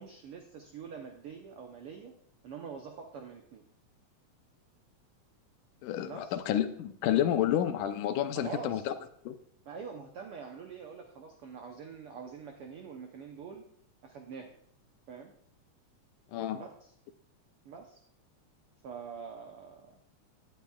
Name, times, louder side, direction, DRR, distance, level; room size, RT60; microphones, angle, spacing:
voice 1, 0.0-2.1 2.4-3.6 6.0-6.4 8.3-8.9 9.7-13.7 14.0-14.6 15.1-15.3 16.5-16.9 17.6-18.0 18.8-20.0, right 6 dB, 90° right, 3 dB, 1.2 m, -45 dB
voice 2, 5.8-8.9 9.3-9.4 16.3-16.6, left 11 dB, 80° left, 9 dB, 2.2 m, -30 dB
16.5 x 10.0 x 2.3 m, 0.68 s
omnidirectional pair, 3.7 m